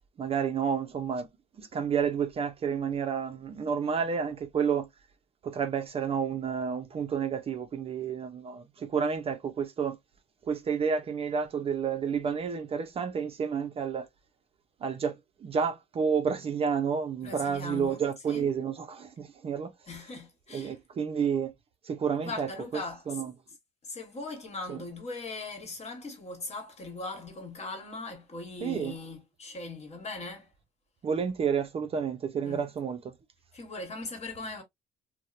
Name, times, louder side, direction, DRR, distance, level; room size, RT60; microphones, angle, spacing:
voice 1, 0.2-1.3 1.6-4.9 5.4-10.0 10.4-14.1 14.8-19.7 20.5-21.5 21.8-22.5 23.1-23.3 24.7-24.8 28.6-28.9 31.0-33.1, right 6 dB, 35° right, 0.4 m, -30 dB
voice 2, 17.2-18.0 18.3-18.5 19.9-20.8 22.2-23.2 23.8-30.5 32.4-32.7 33.5-34.6, left 3 dB, 40° left, 1.2 m, -40 dB
2.8 x 2.0 x 2.4 m
cardioid pair, 110°, 17 cm